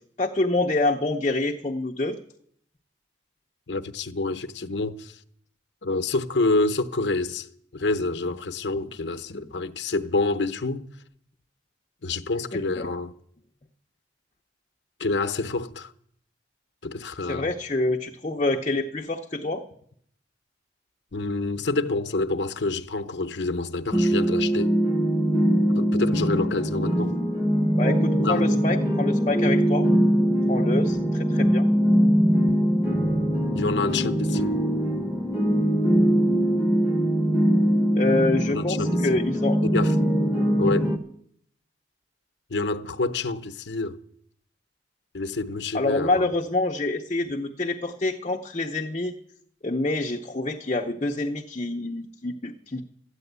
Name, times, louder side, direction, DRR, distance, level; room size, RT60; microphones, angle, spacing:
voice 1, 0.2-2.2 12.5-12.9 17.3-19.6 27.8-29.9 30.5-31.7 38.0-39.6 45.7-49.1 49.6-52.8, left 2 dB, 35° left, 0.7 m, -26 dB
voice 2, 3.7-5.2 5.8-7.5 7.7-10.9 12.0-13.1 15.0-15.9 16.8-17.5 21.1-24.7 25.8-27.1 28.2-28.4 33.5-34.6 38.4-39.0 39.6-39.9 40.6-40.9 42.5-44.0 45.1-46.3, left 3 dB, 70° left, 0.8 m, -27 dB
sound 1, 23.9-41.0, equal, 10° right, 1.3 m, -22 dB
13.0 x 9.8 x 8.1 m
head